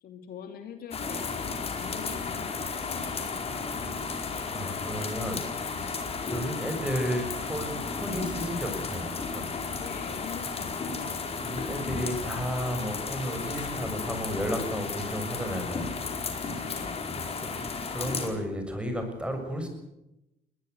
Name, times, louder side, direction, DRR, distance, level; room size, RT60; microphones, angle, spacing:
voice 1, 0.0-3.5 9.7-11.2 16.6-17.5, left 7 dB, 65° left, 7 dB, 2.8 m, -44 dB
sound 1, 0.9-18.3, left 4 dB, 35° left, 4.8 m, -34 dB
voice 2, 4.0-5.4 5.7-9.5 11.4-15.9 16.3-16.7 17.4-19.7, equal, 5° right, 5 dB, 7.1 m, -33 dB
20.5 x 20.5 x 8.2 m, 0.88 s
cardioid pair, 110°, 17 cm